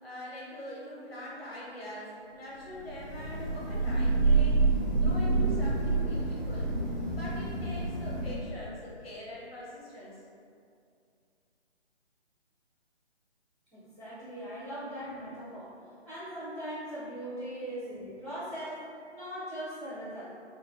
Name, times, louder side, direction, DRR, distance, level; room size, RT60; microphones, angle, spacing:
voice 1, 0.0-6.7 7.1-10.2, left 1 dB, 60° left, -6 dB, 0.8 m, -43 dB
Thunder / Rain, 2.9-8.6, right 3 dB, 35° right, 1.0 m, -28 dB
voice 2, 13.7-15.8 16.0-20.4, equal, 5° right, -25 dB, 0.5 m, -40 dB
3.1 x 2.4 x 2.2 m, 2.3 s
hypercardioid pair, 160°, 34 cm